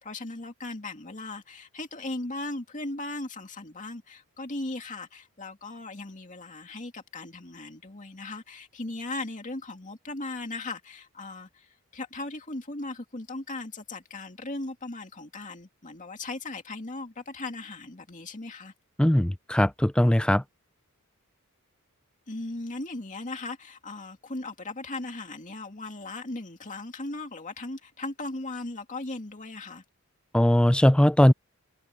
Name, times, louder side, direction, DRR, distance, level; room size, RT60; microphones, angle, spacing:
voice 1, 0.0-18.7 22.3-29.8, left 2 dB, 35° left, 2.4 m, -37 dB
voice 2, 19.0-20.4 30.3-31.3, left 1 dB, 5° left, 0.4 m, -20 dB
head